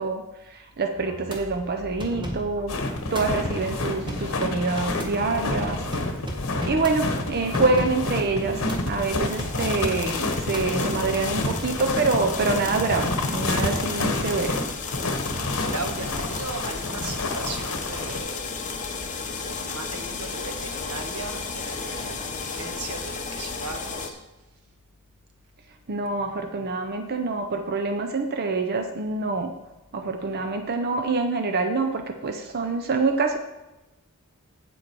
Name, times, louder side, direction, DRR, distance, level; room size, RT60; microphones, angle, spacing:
voice 1, 0.0-5.8 6.6-14.6 25.9-29.5 29.9-33.4, right 3 dB, 45° right, 5 dB, 0.7 m, -26 dB
sound 1, 1.0-11.1, equal, 20° right, 1.6 m, -37 dB
sound 2, 2.7-18.2, left 2 dB, 65° left, 1.2 m, -29 dB
sound 3, 8.7-24.1, left 4 dB, 35° left, 1.0 m, -34 dB
voice 2, 15.7-18.7 19.4-24.2, right 3 dB, 85° right, 5 dB, 1.3 m, -37 dB
8.9 x 7.5 x 4.7 m, 1.0 s
head